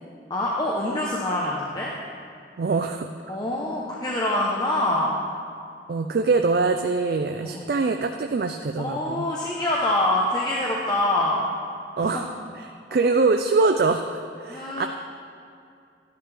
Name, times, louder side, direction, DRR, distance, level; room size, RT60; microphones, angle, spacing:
voice 1, 0.3-1.9 3.3-5.2 7.4-7.6 8.8-11.5 12.0-12.3 12.9-13.0 14.5-14.9, left 1 dB, 20° left, -4 dB, 0.8 m, -25 dB
voice 2, 2.6-3.1 5.9-9.2 12.0-12.3 12.7-14.9, right 3 dB, 55° right, 6 dB, 0.4 m, -23 dB
13.0 x 10.5 x 3.4 m, 2.4 s
head